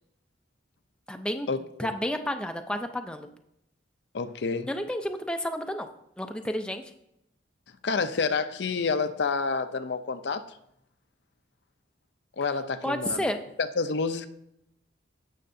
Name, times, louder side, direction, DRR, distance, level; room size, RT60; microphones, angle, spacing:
voice 1, 1.1-1.5 1.8-3.3 4.7-5.9 6.2-6.8 12.8-13.4, equal, 5° left, 5 dB, 0.5 m, -31 dB
voice 2, 4.1-4.7 7.8-10.5 12.4-13.3 13.8-14.3, left 4 dB, 65° left, 10 dB, 0.5 m, -28 dB
16.5 x 6.5 x 2.7 m, 0.79 s
head